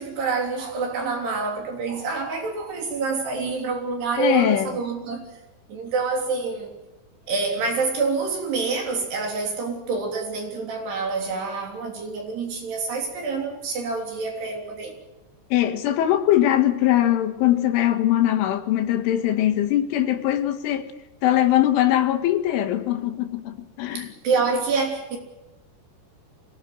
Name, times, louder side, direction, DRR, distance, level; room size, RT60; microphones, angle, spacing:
voice 1, 0.0-5.3 5.7-6.7 7.3-14.9 24.0-25.2, right 4 dB, 60° right, 5.3 m, -27 dB
voice 2, 4.2-4.7 15.5-20.9 21.2-24.1, left 12 dB, 85° left, 4.1 m, -21 dB
25.5 x 18.5 x 7.9 m
omnidirectional pair, 5.5 m